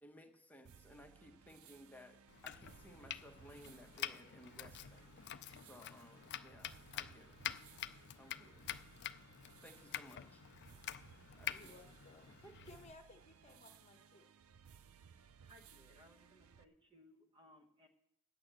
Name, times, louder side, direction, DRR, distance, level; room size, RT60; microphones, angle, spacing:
voice 1, 0.0-7.4 8.2-8.6 9.6-10.4 11.4-11.7 12.4-12.6, equal, 10° left, 4 dB, 1.0 m, -59 dB
sound 1, 0.6-16.6, right 7 dB, 70° right, 0.5 m, -62 dB
Domestic sounds home sounds, 2.3-12.9, left 11 dB, 50° left, 0.4 m, -48 dB
voice 2, 11.5-14.3, left 2 dB, 30° left, 5 dB, 1.1 m, -60 dB
voice 3, 15.5-17.9, equal, 20° right, 4 dB, 1.0 m, -64 dB
8.8 x 8.7 x 7.4 m, 0.82 s
head